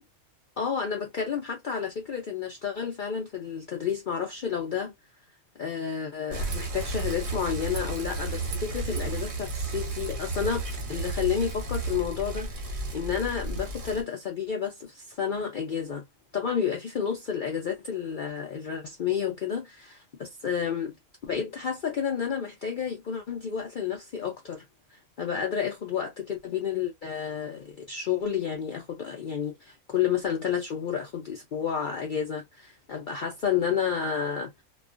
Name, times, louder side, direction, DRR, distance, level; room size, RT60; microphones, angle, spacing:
voice 1, 0.6-4.9 5.6-16.0 16.3-21.0 21.2-24.6 24.9-34.6, left 7 dB, 85° left, 0.4 m, -31 dB
Bicycle, 6.3-14.0, right 2 dB, 50° right, 0.7 m, -33 dB
2.3 x 2.3 x 2.4 m
omnidirectional pair, 1.5 m